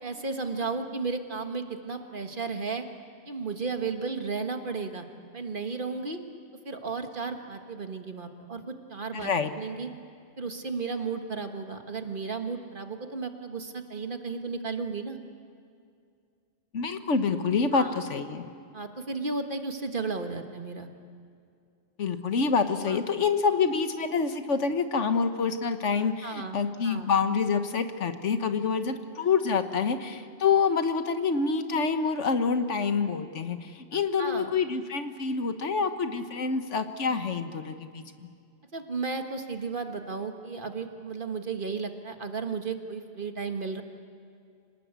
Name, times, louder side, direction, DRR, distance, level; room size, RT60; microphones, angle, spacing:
voice 1, 0.0-2.9 3.3-5.1 5.3-6.2 6.7-9.3 9.6-9.9 10.4-15.2 17.7-18.0 18.7-20.9 22.9-23.0 26.2-26.6 26.8-27.1 34.2-34.5 38.7-43.8, right 4 dB, 45° right, 6 dB, 1.7 m, -34 dB
voice 2, 9.1-9.5 16.7-18.4 22.0-38.0, left 5 dB, 85° left, 8 dB, 1.6 m, -27 dB
26.0 x 19.5 x 8.2 m, 2.3 s
omnidirectional pair, 1.2 m